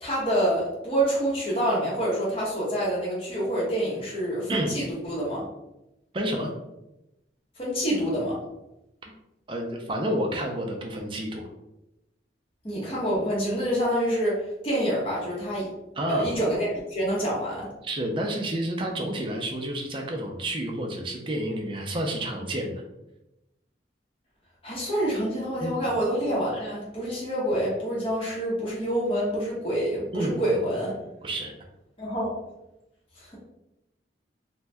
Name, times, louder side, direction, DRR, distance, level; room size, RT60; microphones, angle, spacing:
voice 1, 0.0-5.4 7.6-8.4 12.6-15.7 16.1-17.7 24.6-31.0 32.0-32.3 33.2-33.4, equal, 30° left, -6 dB, 0.8 m, -27 dB
voice 2, 6.1-6.5 9.5-11.4 16.0-16.4 17.8-22.8 25.6-25.9 30.1-30.4 31.2-31.5, right 1 dB, 30° right, 1 dB, 0.4 m, -30 dB
2.6 x 2.2 x 3.3 m, 0.92 s
head